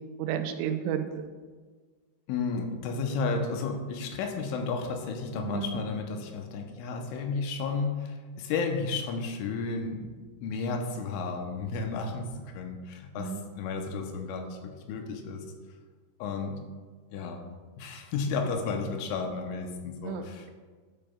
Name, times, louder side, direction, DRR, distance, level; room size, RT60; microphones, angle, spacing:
voice 1, 0.2-1.2 5.4-5.7 13.2-13.4 20.1-20.2, right 8 dB, 85° right, 7 dB, 3.1 m, -31 dB
voice 2, 2.3-10.1 10.4-15.5 16.2-16.6 17.1-17.4 17.8-20.5, left 4 dB, 85° left, 3 dB, 3.2 m, -32 dB
12.0 x 8.7 x 2.3 m, 1.5 s
omnidirectional pair, 5.6 m